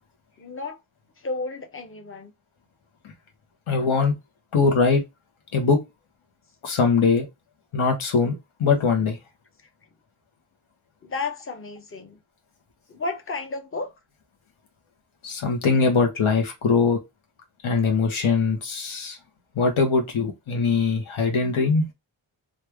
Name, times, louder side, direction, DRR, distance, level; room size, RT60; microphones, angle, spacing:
voice 1, 0.4-0.8 1.2-2.3 11.0-12.2 12.9-13.9, left 3 dB, 25° left, 0.7 m, -32 dB
voice 2, 3.7-4.1 4.5-5.0 5.5-5.8 6.6-7.2 7.7-9.2 15.2-17.0 17.6-19.2 19.5-21.8, left 4 dB, 80° left, 1.1 m, -21 dB
3.2 x 2.5 x 3.3 m
wide cardioid pair, 140°, 48 cm